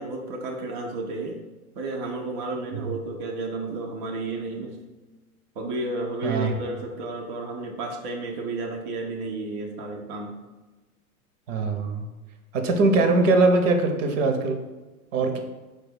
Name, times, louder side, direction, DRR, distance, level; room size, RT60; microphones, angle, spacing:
voice 1, 0.0-1.4 1.8-4.8 5.6-10.3, right 2 dB, 25° right, 1 dB, 0.4 m, -32 dB
voice 2, 6.2-6.5 11.5-12.1 12.5-14.6 15.1-15.4, right 3 dB, 55° right, 6 dB, 0.7 m, -21 dB
4.5 x 2.3 x 4.5 m, 1.2 s
figure-of-eight pair, 100°, 45 cm